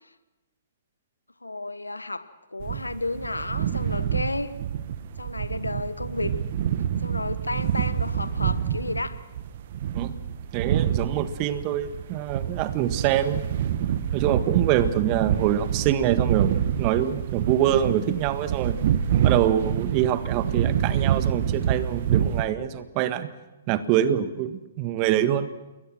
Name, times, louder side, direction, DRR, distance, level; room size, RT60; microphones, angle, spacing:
voice 1, 1.4-2.2 2.5-4.5 5.2-6.3 7.0-9.2, left 2 dB, 90° left, 13 dB, 1.1 m, -32 dB
sound 1, 2.6-22.4, right 9 dB, 50° right, 1.5 m, -27 dB
voice 2, 10.5-13.5 14.1-18.8 19.2-23.3 23.7-25.5, right 11 dB, 35° right, 12 dB, 1.6 m, -25 dB
29.0 x 22.0 x 6.1 m, 1.1 s
figure-of-eight pair, 125°, 0 cm